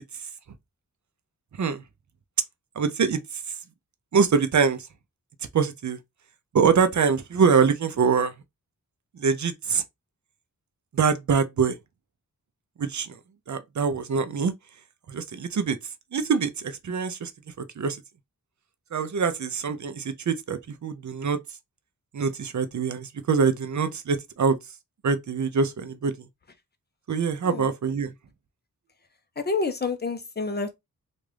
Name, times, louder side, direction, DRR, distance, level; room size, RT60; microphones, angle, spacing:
voice 1, 2.8-3.4 4.1-4.9 5.5-6.0 6.5-8.3 9.2-9.8 10.9-11.8 12.8-13.2 13.5-14.5 15.1-15.8 16.1-17.3 17.6-18.0 18.9-21.4 22.1-24.6 25.0-26.3 27.1-28.1, right 5 dB, 50° right, 0.6 m, -24 dB
voice 2, 29.4-30.7, left 4 dB, 30° left, 0.7 m, -28 dB
3.5 x 2.5 x 3.3 m
wide cardioid pair, 110°, 36 cm